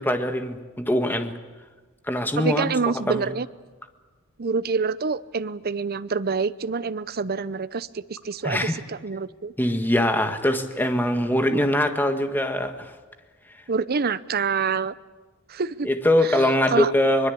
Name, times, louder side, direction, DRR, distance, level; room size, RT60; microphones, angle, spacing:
voice 1, 0.0-1.3 2.1-2.7 3.1-3.3 8.4-8.8 9.6-12.9 15.8-17.3, left 1 dB, 10° left, 6 dB, 1.7 m, -22 dB
voice 2, 2.4-3.5 4.4-9.5 11.5-11.6 13.7-14.9 15.5-15.9 16.3-16.4 16.7-16.9, right 5 dB, 45° right, 15 dB, 0.7 m, -26 dB
23.5 x 22.0 x 8.5 m, 1.3 s
head